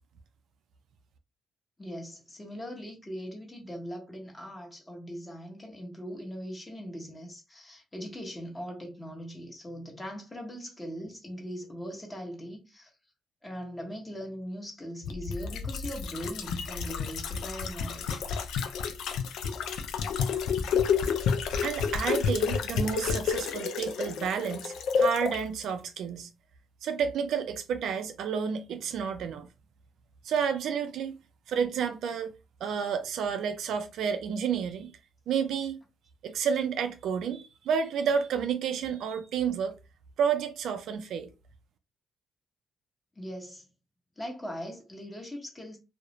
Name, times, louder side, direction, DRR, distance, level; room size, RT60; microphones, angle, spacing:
voice 1, 1.8-12.9 13.4-18.3 43.1-43.7 44.2-45.8, equal, 15° left, 1.0 m, -40 dB
sound 1, 15.0-25.4 25.7-25.8, left 6 dB, 80° left, 0.3 m, -30 dB
voice 2, 21.6-26.3 26.8-29.5 30.2-31.2 31.5-32.3 32.6-34.9 35.3-35.8 36.2-39.7 40.2-41.3, right 7 dB, 75° right, 0.3 m, -30 dB
2.3 x 2.0 x 2.9 m
cardioid pair, 90°, 0 cm